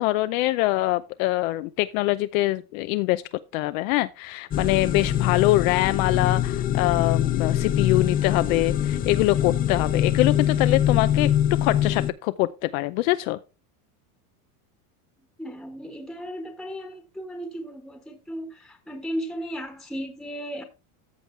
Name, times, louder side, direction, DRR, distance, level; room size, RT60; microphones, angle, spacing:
voice 1, 0.0-3.2 3.5-11.3 11.6-13.4, left 18 dB, 65° left, 0.7 m, -24 dB
sound 1, 4.5-12.1, left 10 dB, 20° left, 0.5 m, -23 dB
voice 2, 15.4-20.6, equal, ahead, 1.3 m, -35 dB
14.0 x 6.4 x 3.3 m
supercardioid pair, 140°, 45 cm